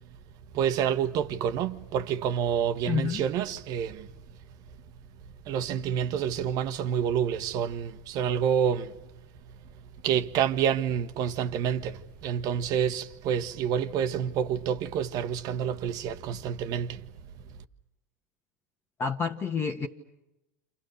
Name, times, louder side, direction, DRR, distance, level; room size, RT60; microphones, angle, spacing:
voice 1, 0.5-4.1 5.5-9.0 10.0-17.0, right 8 dB, 45° right, 1.4 m, -28 dB
voice 2, 2.9-3.2 19.0-19.9, left 6 dB, 25° left, 1.6 m, -29 dB
30.0 x 27.5 x 6.6 m
figure-of-eight pair, 80°, 8 cm